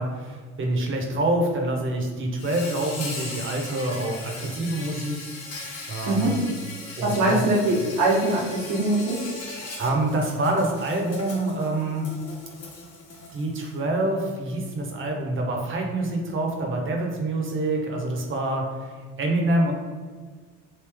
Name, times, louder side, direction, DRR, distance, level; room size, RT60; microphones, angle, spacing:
voice 1, 0.0-5.2 5.9-6.5 7.0-7.4 9.4-12.1 13.3-19.7, right 2 dB, 40° right, 1 dB, 0.9 m, -26 dB
Insect, 2.4-13.8, left 3 dB, 50° left, 1.1 m, -39 dB
voice 2, 6.0-6.3 7.0-9.2, right 2 dB, 90° right, -5 dB, 1.3 m, -22 dB
3.3 x 2.6 x 3.5 m, 1.5 s
supercardioid pair, 95°, 32 cm